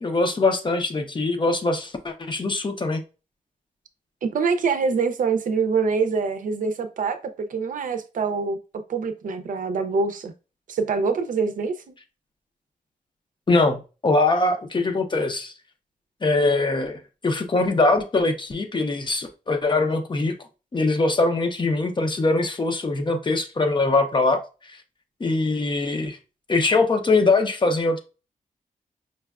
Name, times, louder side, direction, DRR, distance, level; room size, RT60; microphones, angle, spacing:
voice 1, 0.0-3.0 13.5-15.5 16.2-20.4 20.7-24.8 25.2-26.2 26.5-28.0, left 3 dB, 35° left, 0.6 m, -22 dB
voice 2, 4.2-8.6 8.9-10.3 10.7-11.9, right 5 dB, 70° right, 0.5 m, -25 dB
5.2 x 2.2 x 2.3 m
cardioid pair, 85°, 14 cm